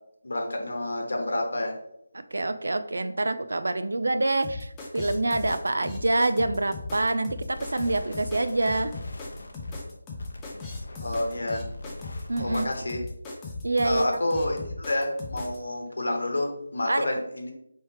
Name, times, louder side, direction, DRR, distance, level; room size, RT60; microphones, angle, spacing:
voice 1, 0.2-1.8 11.0-11.6 12.4-13.0 13.8-17.5, left 1 dB, 75° left, 2 dB, 1.0 m, -29 dB
voice 2, 2.3-8.9 12.3-12.7 13.6-14.2 16.9-17.1, right 2 dB, 85° right, 11 dB, 0.4 m, -26 dB
sound 1, 4.4-15.6, left 3 dB, 10° left, 0.4 m, -37 dB
sound 2, 7.5-13.0, left 2 dB, 55° left, 0.6 m, -44 dB
4.3 x 3.1 x 3.2 m, 0.77 s
figure-of-eight pair, 175°, 0 cm